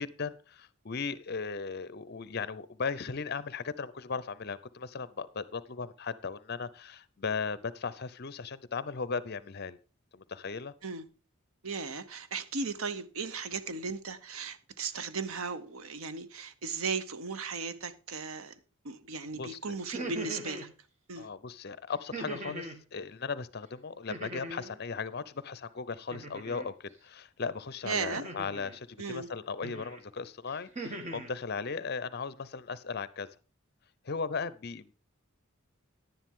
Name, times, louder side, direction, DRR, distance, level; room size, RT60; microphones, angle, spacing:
voice 1, 0.0-9.8 10.1-10.7 19.4-19.8 21.2-33.3 34.0-34.9, left 5 dB, 50° left, 0.6 m, -37 dB
voice 2, 11.6-18.5 18.8-20.7 21.1-21.3 27.8-28.3 29.0-29.3, right 4 dB, 75° right, 0.8 m, -36 dB
sound 1, 19.8-20.7 22.1-22.8 24.1-24.8 26.1-26.7 28.1-28.8 29.6-30.0 30.5-31.3, right 2 dB, 35° right, 1.3 m, -40 dB
10.5 x 10.0 x 3.7 m
head